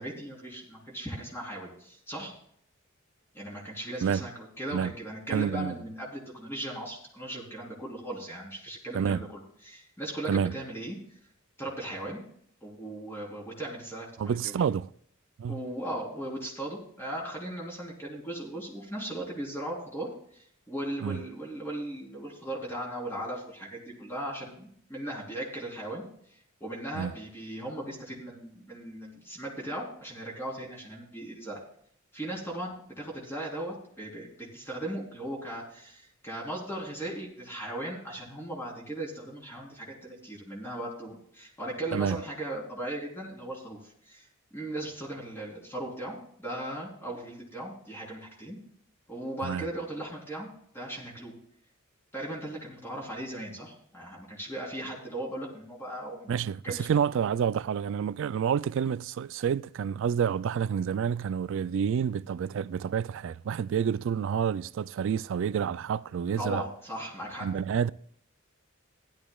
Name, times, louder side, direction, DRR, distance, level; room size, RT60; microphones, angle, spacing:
voice 1, 0.0-2.3 3.3-11.0 11.6-12.2 12.6-14.7 15.5-26.0 26.6-31.6 32.1-48.6 49.1-50.5 50.7-51.4 52.1-56.3 56.6-56.9 66.4-67.5, right 1 dB, 10° left, 3.6 m, -38 dB
voice 2, 5.3-5.7 8.9-9.2 10.3-10.5 14.2-14.9 15.4-15.6 21.0-21.2 27.0-27.1 41.9-42.2 49.4-49.7 56.3-66.6 67.4-67.9, right 7 dB, 65° right, 0.3 m, -28 dB
16.0 x 12.0 x 2.3 m
head